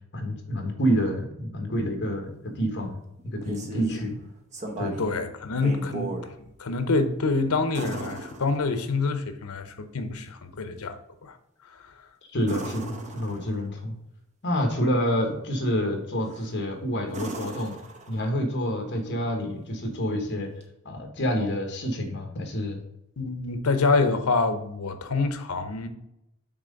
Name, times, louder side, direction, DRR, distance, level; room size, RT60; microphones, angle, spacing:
voice 1, 0.1-2.3 2.5-3.0 3.3-4.1 4.8-5.0 12.3-13.9 14.4-17.7 18.1-20.5 20.8-22.8, equal, 50° left, 1.3 m, -28 dB
sound 1, 3.2-4.0 4.5-5.1 5.5-6.3 7.7-9.0 12.4-13.7 16.2-16.6 17.1-18.5 20.6-20.7, right 2 dB, 35° right, 0.9 m, -37 dB
voice 2, 3.7-4.1 5.0-11.4 11.7-11.9 23.2-25.9, left 3 dB, 80° left, 0.8 m, -27 dB
6.0 x 3.7 x 5.2 m
head